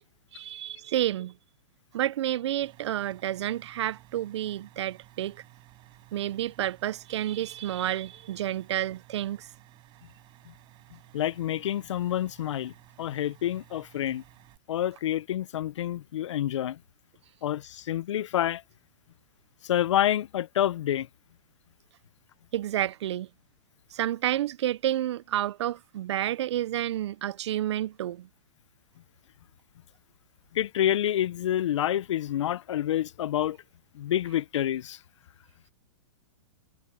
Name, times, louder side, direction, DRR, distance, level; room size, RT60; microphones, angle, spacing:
voice 1, 0.3-1.3 1.9-5.4 6.1-9.5 22.5-23.3 23.9-28.3, right 12 dB, 65° right, 0.5 m, -30 dB
sound 1, 2.6-14.6, right 17 dB, 30° right, 6.5 m, -56 dB
voice 2, 11.1-12.7 13.0-14.2 14.7-16.8 17.4-18.6 19.6-21.1 30.5-33.6 33.9-35.0, left 11 dB, 75° left, 0.7 m, -28 dB
hypercardioid pair, 145°, 15 cm